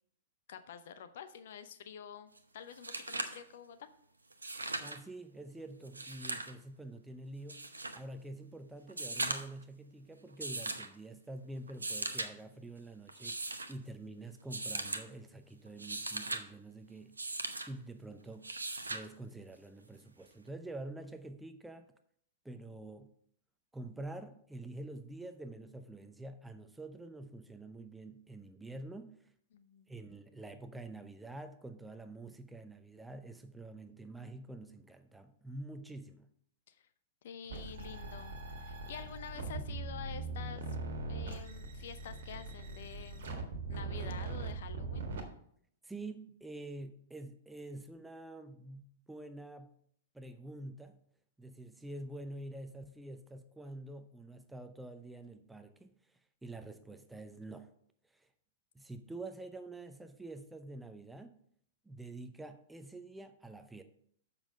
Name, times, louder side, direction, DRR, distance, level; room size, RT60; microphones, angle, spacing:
voice 1, 0.5-3.9 29.5-29.9 36.7-36.8 37.2-38.3 38.6-40.6 41.1-43.3 43.7-45.1, left 8 dB, 60° left, 0.7 m, -48 dB
sound 1, 2.4-2.5 2.7-3.4 4.3-5.0 5.8-6.5 7.5-8.0 8.9-9.6 10.4-10.9 11.7-12.3 13.1-13.7 14.5-15.0 15.7-16.4 17.2-17.7 18.4-19.1 20.5-20.6, right 2 dB, 85° right, 0.8 m, -38 dB
voice 2, 4.8-7.6 7.9-13.4 13.7-17.1 17.6-18.5 18.9-21.9 22.4-23.1 23.7-29.3 29.9-36.3 45.8-49.7 50.1-51.0 51.4-55.9 56.4-57.7 58.1-58.3 58.7-61.4 61.8-63.8, right 2 dB, 5° right, 0.7 m, -47 dB
sound 2, 37.5-45.2, right 3 dB, 65° right, 1.6 m, -41 dB
7.2 x 5.7 x 5.2 m
figure-of-eight pair, 105°, 0 cm